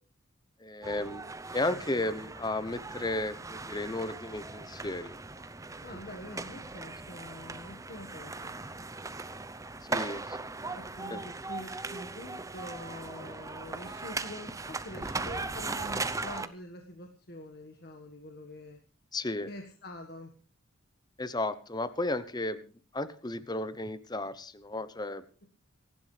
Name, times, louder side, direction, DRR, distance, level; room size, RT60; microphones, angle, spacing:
voice 1, 0.6-1.2 1.5-5.2 9.9-10.5 11.1-11.2 19.1-19.5 21.2-25.4, left 2 dB, 20° left, 14 dB, 0.9 m, -34 dB
sound 1, 0.8-16.5, right 3 dB, 15° right, 0.7 m, -39 dB
voice 2, 5.8-8.5 10.8-18.8 19.5-20.3, left 1 dB, 50° left, 4 dB, 1.6 m, -45 dB
26.5 x 11.5 x 3.3 m, 0.39 s
head